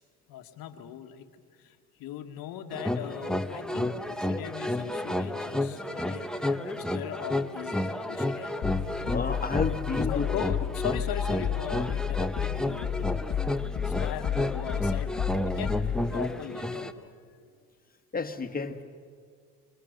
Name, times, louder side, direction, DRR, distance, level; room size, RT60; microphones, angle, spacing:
voice 1, 0.3-1.3 1.6-8.5 10.1-13.2 13.8-15.2 15.4-17.1, left 11 dB, 65° left, 6 dB, 1.7 m, -39 dB
sound 1, 2.7-16.9, left 1 dB, ahead, 0.9 m, -31 dB
sound 2, 8.6-16.1, left 9 dB, 45° left, 1.5 m, -32 dB
voice 2, 9.1-10.3 13.9-14.0 18.1-18.8, left 4 dB, 25° left, 8 dB, 1.6 m, -31 dB
26.0 x 24.5 x 6.6 m, 2.1 s
supercardioid pair, 95°, 38 cm